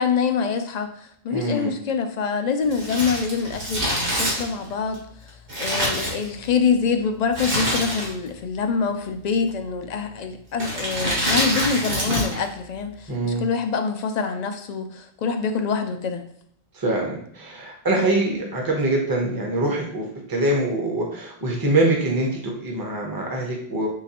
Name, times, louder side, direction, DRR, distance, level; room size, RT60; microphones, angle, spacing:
voice 1, 0.0-16.2, left 5 dB, 60° left, 6 dB, 0.4 m, -25 dB
voice 2, 1.3-1.7 13.1-13.5 16.8-23.9, right 2 dB, 20° right, -1 dB, 0.8 m, -24 dB
Crumpling crinkling, 2.7-6.7 7.3-8.3 8.6-8.7 9.5-9.9 10.5-12.4 12.7-12.8, equal, 55° right, 1.6 m, -26 dB
4.7 x 3.0 x 2.9 m, 0.67 s
omnidirectional pair, 1.1 m